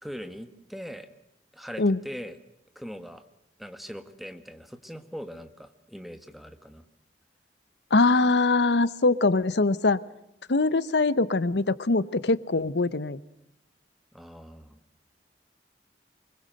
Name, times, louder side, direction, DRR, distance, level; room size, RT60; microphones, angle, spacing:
voice 1, 0.0-1.1 1.5-2.4 2.7-3.2 3.6-6.8 14.1-14.8, equal, ahead, 9 dB, 1.5 m, -41 dB
voice 2, 7.9-10.0 10.5-13.2, left 3 dB, 80° left, 17 dB, 0.9 m, -23 dB
25.0 x 22.5 x 7.7 m, 0.78 s
head